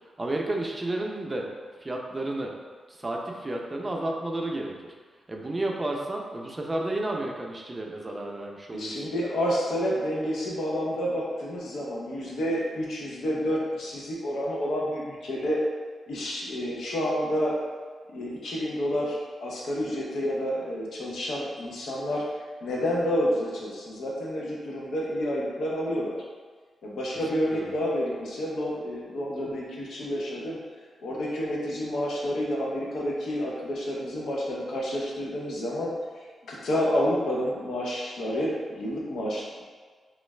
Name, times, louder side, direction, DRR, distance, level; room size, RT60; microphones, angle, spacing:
voice 1, 0.2-1.5 1.8-2.5 2.9-4.9 5.3-9.1 27.3-27.8, right 1 dB, 25° right, 0 dB, 0.5 m, -32 dB
voice 2, 8.7-15.6 16.1-17.6 18.1-22.2 22.6-26.2 26.8-30.6 31.0-35.9 36.5-39.6, equal, 80° left, -3 dB, 0.7 m, -29 dB
3.1 x 2.4 x 3.2 m, 1.5 s
cardioid pair, 65°, 0 cm